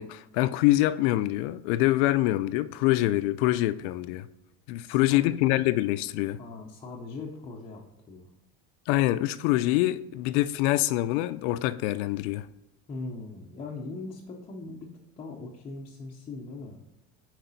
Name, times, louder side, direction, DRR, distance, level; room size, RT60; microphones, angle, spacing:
voice 1, 0.0-4.3 4.7-6.4 8.9-12.5, left 16 dB, 75° left, 0.5 m, -25 dB
voice 2, 4.8-5.6 6.4-7.8 8.1-8.3 12.9-14.9 15.2-16.8, left 3 dB, 15° left, 0.5 m, -40 dB
8.8 x 4.7 x 4.0 m
cardioid pair, 170°, 36 cm